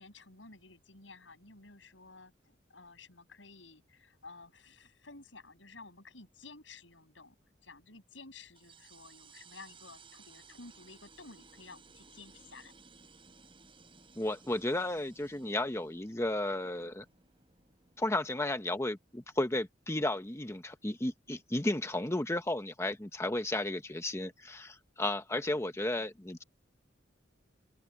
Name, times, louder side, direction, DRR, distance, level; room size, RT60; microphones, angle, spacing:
voice 1, 0.0-7.4 7.6-12.7, left 3 dB, 85° left, 6.8 m, -53 dB
sound 1, 8.5-19.6, right 4 dB, 30° right, 5.8 m, -59 dB
voice 2, 14.2-17.0 18.0-26.4, left 1 dB, 15° left, 1.0 m, -33 dB
open air
head